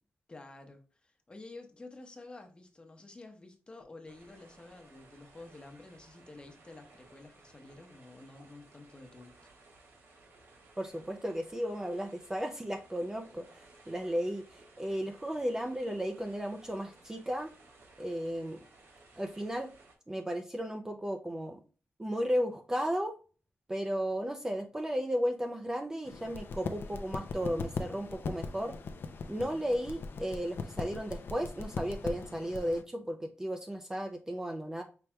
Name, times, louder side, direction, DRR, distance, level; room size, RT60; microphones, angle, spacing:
voice 1, 0.3-9.3, left 2 dB, 25° left, 0.8 m, -50 dB
sound 1, 4.1-20.0, right 2 dB, 75° right, 1.5 m, -59 dB
voice 2, 10.8-17.5 18.0-18.6 19.2-19.7 20.1-21.6 22.0-23.1 23.7-28.8 29.3-34.8, equal, 15° right, 0.4 m, -34 dB
sound 2, 26.1-32.8, left 4 dB, 60° left, 0.5 m, -40 dB
5.8 x 3.2 x 2.2 m
wide cardioid pair, 140°, 4 cm